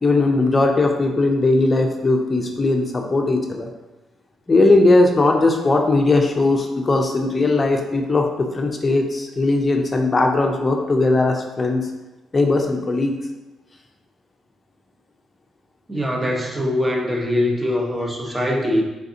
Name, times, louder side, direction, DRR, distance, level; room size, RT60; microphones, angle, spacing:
voice 1, 0.0-3.7 4.5-11.8 12.3-13.2, left 2 dB, 25° left, 2 dB, 0.5 m, -18 dB
voice 2, 15.9-18.8, left 1 dB, 15° right, 1 dB, 0.7 m, -22 dB
3.8 x 3.5 x 2.7 m, 1.1 s
cardioid pair, 95°, 0 cm